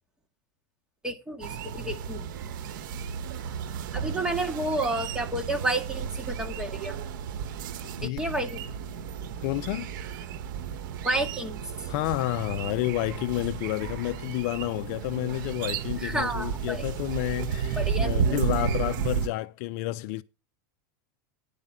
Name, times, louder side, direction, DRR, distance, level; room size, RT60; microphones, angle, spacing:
voice 1, 1.0-2.3 3.9-7.0 8.0-8.7 11.0-11.9 16.0-16.9 17.8-18.4, right 1 dB, 5° right, 1.9 m, -31 dB
sound 1, 1.4-19.3, right 7 dB, 75° right, 1.2 m, -33 dB
voice 2, 9.4-9.9 11.9-20.2, left 18 dB, 55° left, 0.5 m, -30 dB
10.5 x 5.2 x 7.4 m
supercardioid pair, 135°, 11 cm